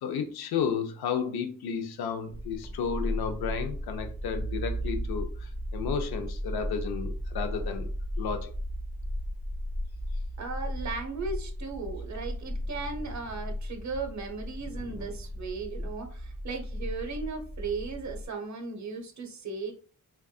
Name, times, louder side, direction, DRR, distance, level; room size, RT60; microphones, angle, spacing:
voice 1, 0.0-7.9 8.2-8.5, left 6 dB, 90° left, 5 dB, 0.5 m, -32 dB
sound 1, 2.3-18.2, equal, 5° right, 0.3 m, -35 dB
voice 2, 10.4-19.7, right 4 dB, 50° right, 4 dB, 0.8 m, -36 dB
3.5 x 2.3 x 2.3 m, 0.41 s
wide cardioid pair, 120°, 36 cm